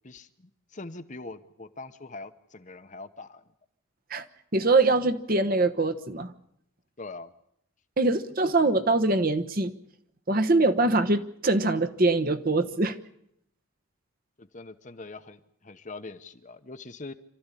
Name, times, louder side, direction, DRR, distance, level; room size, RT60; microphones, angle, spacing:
voice 1, 0.0-3.4 7.0-7.3 14.4-17.1, left 3 dB, 35° left, 9 dB, 1.0 m, -43 dB
voice 2, 4.5-6.3 8.0-9.7 10.3-12.9, right 2 dB, 40° right, 9 dB, 1.1 m, -23 dB
26.5 x 13.5 x 10.0 m, 0.75 s
head